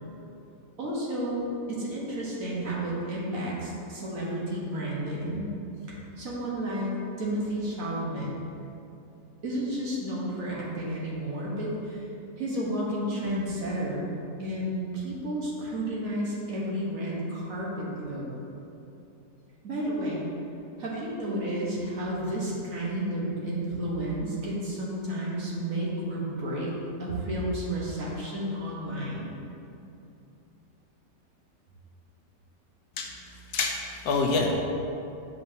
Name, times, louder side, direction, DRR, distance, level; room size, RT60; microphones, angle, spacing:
voice 1, 0.8-5.6 5.9-8.3 9.4-12.0 12.4-14.1 14.4-18.3 19.6-20.2 20.8-26.7 27.0-29.3, right 1 dB, 55° right, -5 dB, 1.4 m, -31 dB
voice 2, 33.5-34.7, left 3 dB, 75° left, 1 dB, 1.1 m, -27 dB
7.4 x 5.3 x 2.7 m, 2.8 s
omnidirectional pair, 1.8 m